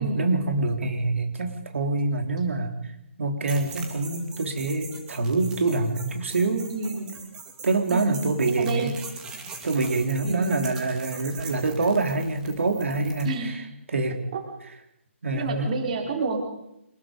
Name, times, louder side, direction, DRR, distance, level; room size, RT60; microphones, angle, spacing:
voice 1, 0.0-2.7 3.2-6.7 7.6-8.9 9.6-13.6 13.9-14.2 15.2-15.7, right 3 dB, 70° right, 4 dB, 3.7 m, -25 dB
sound 1, 3.5-13.3, right 5 dB, 10° right, 2.5 m, -41 dB
voice 2, 6.7-7.1 7.9-9.0 10.2-10.7 13.2-13.6 14.3-14.4 15.3-16.4, right 4 dB, 35° right, 2 dB, 3.9 m, -30 dB
26.0 x 20.5 x 5.3 m, 0.84 s
hypercardioid pair, 170°, 7 cm